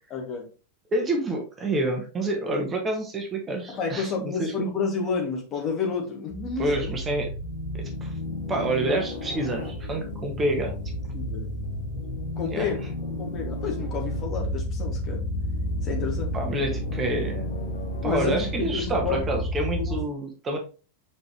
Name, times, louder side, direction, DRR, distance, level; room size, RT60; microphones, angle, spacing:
voice 1, 0.1-0.5 3.7-6.9 11.1-11.5 12.4-12.8 13.2-15.2 15.8-16.3 18.0-19.4 19.8-20.0, left 5 dB, 35° left, 0 dB, 2.5 m, -30 dB
voice 2, 0.9-4.5 6.6-7.3 7.7-8.1 8.5-10.7 12.5-12.8 16.3-17.5 18.0-20.6, right 2 dB, 20° right, 2 dB, 1.6 m, -28 dB
sound 1, 6.3-20.0, left 1 dB, 60° left, 2.0 m, -31 dB
6.2 x 5.1 x 3.2 m, 0.34 s
figure-of-eight pair, 90°, 0 cm